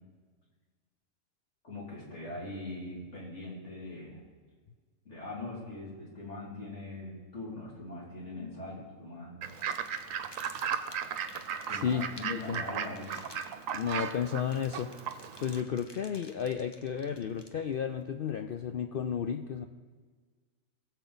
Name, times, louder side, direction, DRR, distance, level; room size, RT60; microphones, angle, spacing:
voice 1, 1.6-4.2 5.0-9.4 11.7-13.2, left 2 dB, 55° left, -4 dB, 3.3 m, -41 dB
sound 1, 9.4-17.9, left 2 dB, 25° left, 0.6 m, -54 dB
Fowl / Bird, 9.4-15.6, right 8 dB, 70° right, 1.0 m, -36 dB
voice 2, 11.7-12.6 13.7-14.9 15.4-19.7, left 8 dB, 75° left, 6 dB, 0.5 m, -33 dB
20.0 x 7.3 x 4.0 m, 1.5 s
omnidirectional pair, 1.5 m